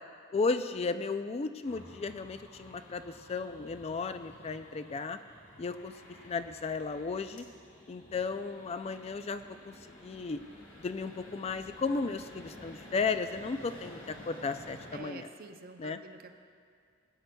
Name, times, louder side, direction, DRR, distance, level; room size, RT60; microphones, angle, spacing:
voice 1, 0.3-5.2 5.6-5.9 6.2-7.5 7.9-9.7 10.0-10.4 10.8-15.3 15.8-16.0, left 4 dB, 30° left, 11 dB, 0.3 m, -34 dB
sound 1, 1.6-15.0, left 1 dB, 70° left, 2.2 m, -52 dB
voice 2, 14.9-16.4, right 3 dB, 50° right, 6 dB, 0.6 m, -48 dB
18.5 x 9.6 x 2.3 m, 2.2 s
head